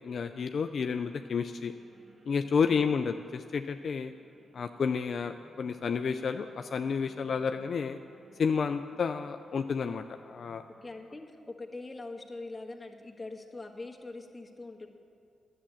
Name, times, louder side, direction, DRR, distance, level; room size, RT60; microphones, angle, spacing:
voice 1, 0.0-1.7 2.3-3.1 3.5-4.1 4.5-8.0 8.4-10.6, left 6 dB, 60° left, 7 dB, 0.4 m, -30 dB
sound 1, 1.0-11.0, right 2 dB, 45° right, 2.8 m, -60 dB
voice 2, 2.7-3.0 10.8-14.9, left 2 dB, 20° left, 1 dB, 1.5 m, -43 dB
10.0 x 7.5 x 8.6 m, 2.4 s
supercardioid pair, 55°, 0 cm